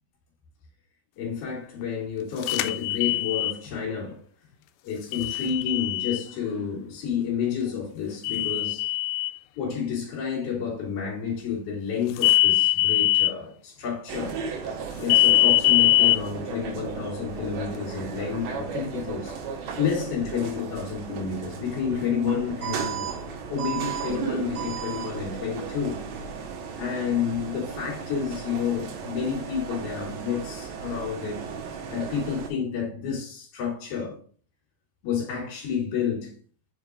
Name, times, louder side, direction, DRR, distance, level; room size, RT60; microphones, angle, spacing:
voice 1, 1.2-4.2 4.8-8.9 9.6-14.4 15.0-23.1 23.5-26.0 26.8-31.4 31.9-34.2 35.0-36.3, left 7 dB, 55° left, 4.1 m, -30 dB
sound 1, 2.4-3.6 5.1-6.2 8.2-9.3 12.2-13.3 15.1-16.2, left 17 dB, 85° left, 2.8 m, -21 dB
sound 2, 14.1-32.5, right 6 dB, 80° right, 3.2 m, -35 dB
7.4 x 5.1 x 2.5 m
omnidirectional pair, 5.2 m